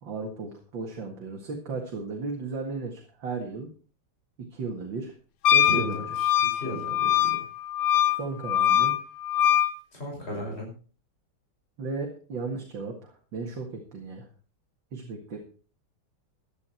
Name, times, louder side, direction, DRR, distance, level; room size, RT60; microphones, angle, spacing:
voice 1, 0.0-3.7 4.4-5.2 5.5-6.1 8.1-8.9 11.8-14.3 14.9-15.4, right 4 dB, 65° right, 1 dB, 2.7 m, -35 dB
Wind instrument woodwind instrument, 5.4-9.7, left 11 dB, 65° left, 0.9 m, -23 dB
voice 2, 5.6-7.4 9.9-10.7, equal, 30° left, -1 dB, 5.6 m, -35 dB
15.0 x 11.0 x 4.4 m, 0.39 s
omnidirectional pair, 2.2 m